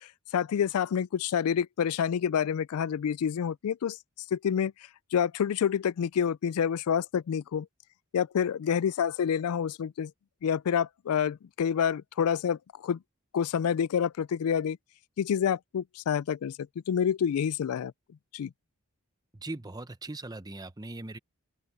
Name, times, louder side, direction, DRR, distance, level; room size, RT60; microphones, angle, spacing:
voice 1, 0.0-4.0 4.3-4.7 5.1-7.7 8.1-10.1 10.4-13.0 13.3-14.8 15.2-16.5 16.9-17.9 18.3-18.5, left 8 dB, 75° left, 0.3 m, -28 dB
voice 2, 19.3-21.2, right 2 dB, 15° right, 0.8 m, -40 dB
open air
head